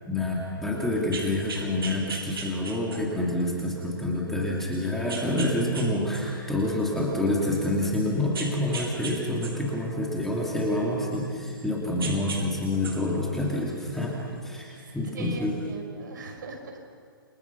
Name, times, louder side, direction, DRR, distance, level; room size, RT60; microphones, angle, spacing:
voice 1, 0.1-14.2 14.4-15.6, left 1 dB, 5° left, -4 dB, 2.8 m, -27 dB
sound 1, 1.0-3.2 3.8-3.9 5.1-5.9 6.1-7.4 8.3-9.1 9.4-11.6 12.0-12.4 12.7-14.1 15.2-15.3, right 4 dB, 85° right, 7.7 m, -37 dB
voice 2, 14.5-16.9, right 3 dB, 60° right, 3 dB, 5.8 m, -41 dB
29.0 x 24.5 x 6.0 m, 2.3 s
hypercardioid pair, 160°, 12 cm